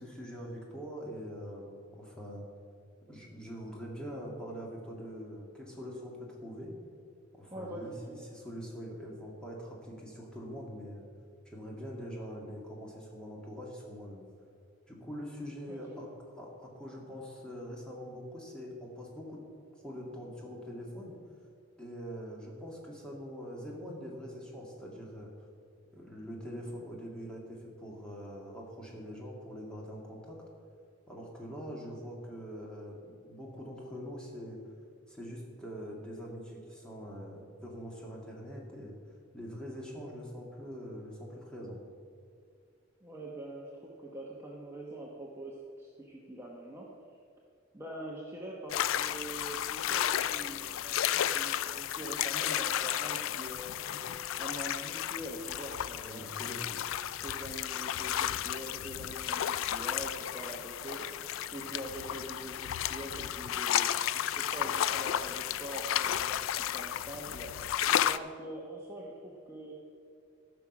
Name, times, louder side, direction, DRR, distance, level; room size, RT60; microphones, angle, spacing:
voice 1, 0.0-2.5 3.1-6.8 7.3-11.0 11.5-14.2 14.9-19.4 19.7-21.1 21.8-25.3 25.9-30.4 31.1-34.6 35.1-39.0 39.3-41.8 56.0-56.8, equal, 5° left, -3 dB, 2.0 m, -43 dB
voice 2, 7.5-8.2 15.7-16.0 43.0-46.9 47.7-53.8 54.4-56.3 57.2-61.0 61.5-67.5 68.0-69.7, right 1 dB, 15° right, -4 dB, 1.0 m, -44 dB
sound 1, 48.7-68.2, left 11 dB, 85° left, 0.3 m, -33 dB
14.0 x 6.1 x 6.0 m, 2.2 s
head